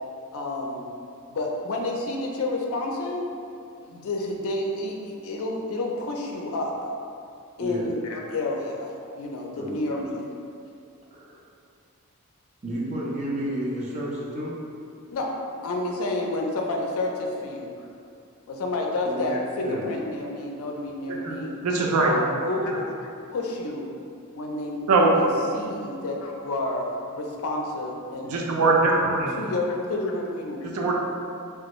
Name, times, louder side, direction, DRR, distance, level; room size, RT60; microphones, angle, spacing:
voice 1, 0.3-0.8 1.3-3.2 3.8-6.9 7.6-10.3 15.1-15.3 15.6-17.9 18.5-21.6 22.0-23.9 24.3-25.3 25.5-28.4 29.4-30.7, left 2 dB, 65° left, 0 dB, 0.4 m, -30 dB
voice 2, 7.6-7.9 9.6-9.7 11.1-11.4 12.6-14.5 19.0-19.2 19.5-19.9 28.9-29.1, equal, 30° right, -5 dB, 0.6 m, -31 dB
voice 3, 21.6-22.2 24.9-25.1 28.3-29.4 30.6-30.9, right 3 dB, 75° right, -1 dB, 0.5 m, -21 dB
3.3 x 2.3 x 3.0 m, 2.5 s
head